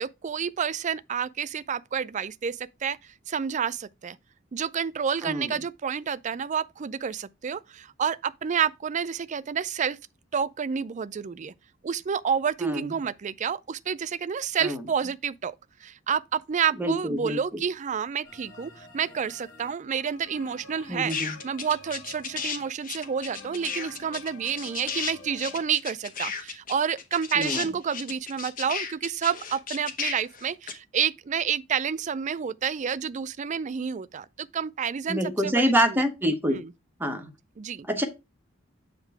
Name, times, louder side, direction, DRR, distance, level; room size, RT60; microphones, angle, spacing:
voice 1, 0.0-4.2 4.5-10.0 10.3-11.5 11.8-15.5 15.8-36.0 36.5-36.7 37.6-37.9, right 7 dB, 35° right, 0.4 m, -29 dB
voice 2, 5.2-5.5 12.6-12.8 14.6-14.8 16.8-17.4 20.9-21.3 27.4-27.6 35.1-36.6 37.0-37.3 37.9-38.1, equal, 10° right, 1.1 m, -26 dB
sound 1, 18.2-25.6, left 2 dB, 75° left, 2.4 m, -49 dB
sound 2, 21.1-22.6 22.8-30.7, left 6 dB, 45° left, 1.1 m, -33 dB
8.0 x 3.8 x 4.6 m
head